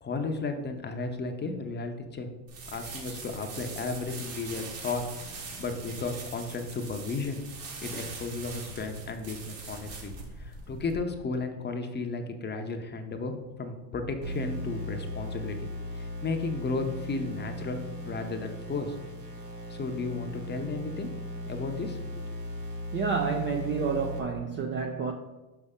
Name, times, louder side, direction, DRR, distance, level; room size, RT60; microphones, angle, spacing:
voice 1, 0.0-2.3 2.7-5.0 5.3-7.4 7.8-10.1 10.4-18.9 19.7-21.1 21.5-22.0, left 3 dB, 20° left, 5 dB, 0.7 m, -34 dB
sound 1, 2.5-11.0, right 3 dB, 60° right, 1.9 m, -42 dB
sound 2, 14.2-24.2, left 1 dB, 90° right, 1.9 m, -38 dB
voice 2, 22.9-25.1, right 5 dB, 25° right, 4 dB, 0.4 m, -29 dB
5.9 x 5.6 x 3.6 m, 1.1 s
supercardioid pair, 110°, 50 cm